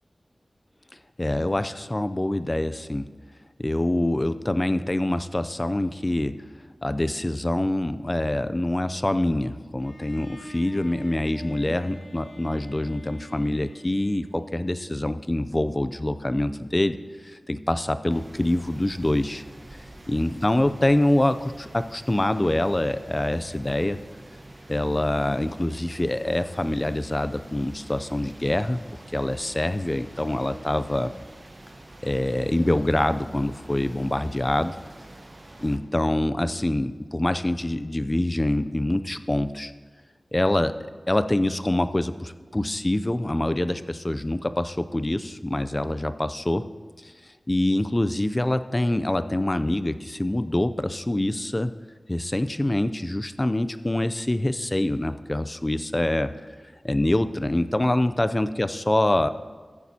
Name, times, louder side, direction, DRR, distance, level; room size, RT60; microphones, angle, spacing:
voice 1, 1.2-3.1 3.6-6.4 6.8-17.0 17.2-19.4 20.1-24.0 24.7-28.8 29.1-31.1 32.0-34.8 35.6-39.7 40.3-46.6 47.0-47.1 47.5-51.7 52.1-56.3 56.8-59.3, left 1 dB, 30° left, 12 dB, 0.5 m, -25 dB
Bowed string instrument, 9.8-14.8, equal, 85° left, 1.6 m, -45 dB
sound 1, 18.1-35.8, right 1 dB, 40° right, 1.0 m, -46 dB
15.0 x 9.1 x 2.8 m, 1.5 s
wide cardioid pair, 50°, 0 cm